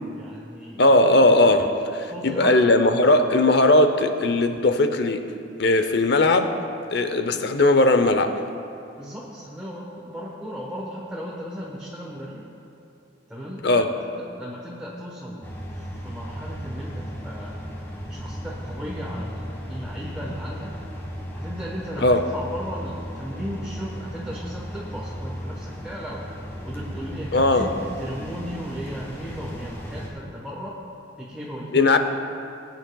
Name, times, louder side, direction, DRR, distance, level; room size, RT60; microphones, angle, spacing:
voice 1, 0.2-0.9 2.0-2.8 9.0-12.4 13.3-15.4 15.7-17.6 18.1-20.7 21.3-26.3 26.6-30.8 31.2-32.0, equal, 5° right, -5 dB, 1.1 m, -36 dB
voice 2, 0.8-5.3 5.6-6.5 6.9-8.3 13.6-13.9 22.0-22.2 27.3-27.7 31.7-32.0, left 2 dB, 55° left, 8 dB, 0.7 m, -18 dB
sound 1, 15.4-30.1, equal, 10° left, 1.4 m, -35 dB
21.0 x 9.0 x 2.3 m, 2.7 s
head